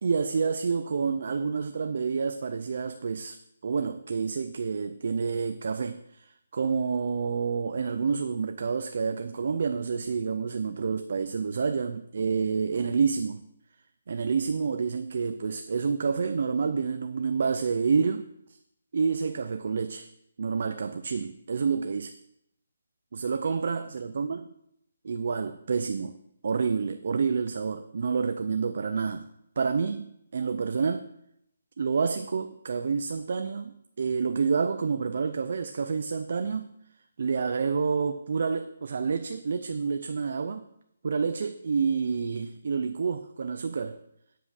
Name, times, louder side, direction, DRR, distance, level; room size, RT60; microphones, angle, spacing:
voice 1, 0.0-13.4 14.1-18.3 18.9-20.1 20.4-22.1 23.1-24.5 25.0-26.1 26.4-29.3 29.6-31.1 31.8-36.7 37.2-40.6 41.0-44.0, right 5 dB, 45° right, 9 dB, 0.4 m, -28 dB
9.5 x 5.5 x 6.3 m, 0.78 s
hypercardioid pair, 180°, 0 cm